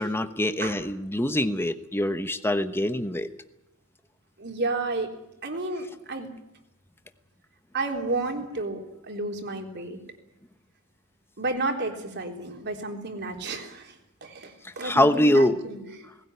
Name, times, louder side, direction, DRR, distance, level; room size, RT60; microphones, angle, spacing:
voice 1, 0.0-3.3 14.8-15.6, left 1 dB, 10° left, 9 dB, 1.0 m, -24 dB
voice 2, 4.4-5.1 5.4-6.3 7.7-10.0 11.4-13.9 14.2-16.0, right 2 dB, 50° right, 3 dB, 3.7 m, -31 dB
19.5 x 17.5 x 9.8 m, 0.86 s
head